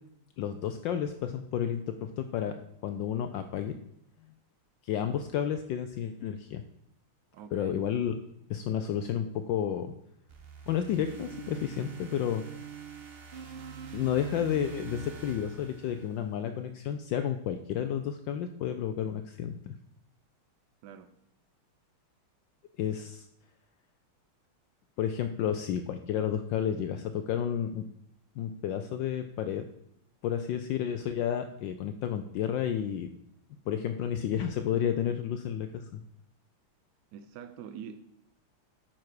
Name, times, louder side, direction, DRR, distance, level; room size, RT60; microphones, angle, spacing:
voice 1, 0.4-3.8 4.8-6.6 7.5-8.1 8.5-9.9 10.7-12.4 13.9-19.7 22.8-23.3 25.0-27.8 28.4-29.6 30.2-33.1 33.7-36.0, left 9 dB, 75° left, 1.1 m, -31 dB
voice 2, 7.3-7.7 20.8-21.1 37.1-38.0, right 8 dB, 75° right, 1.0 m, -44 dB
sound 1, 10.3-16.5, right 7 dB, 60° right, 0.6 m, -44 dB
9.2 x 5.9 x 4.7 m
omnidirectional pair, 2.3 m